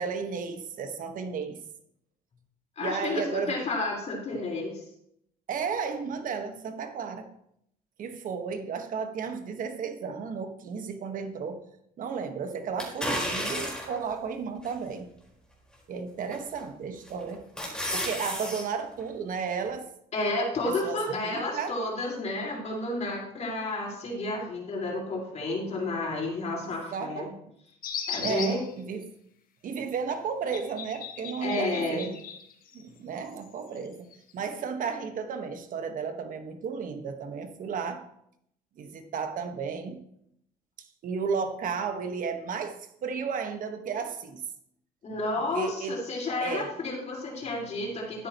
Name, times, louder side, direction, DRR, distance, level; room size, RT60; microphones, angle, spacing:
voice 1, 0.0-1.6 2.8-3.6 5.5-7.3 8.0-11.6 12.0-15.1 15.9-17.4 17.9-19.9 20.6-21.8 26.9-27.3 28.2-29.1 29.6-32.1 32.7-34.1 34.3-38.0 38.8-40.0 41.0-44.4 45.5-45.9 46.4-46.7, right 5 dB, 60° right, 6 dB, 1.5 m, -33 dB
voice 2, 2.8-4.8 20.1-27.3 28.1-28.6 31.4-32.1 45.0-48.3, left 2 dB, 45° left, -2 dB, 4.7 m, -31 dB
sound 1, 12.8-14.0 14.6-14.7 16.3-16.6 17.1-18.6 19.0-19.1, equal, 5° left, 4.7 m, -32 dB
sound 2, 27.8-28.7 30.5-33.0 33.3-34.4, left 7 dB, 65° left, 1.4 m, -38 dB
12.5 x 10.0 x 3.1 m, 0.74 s
cardioid pair, 100°, 16 cm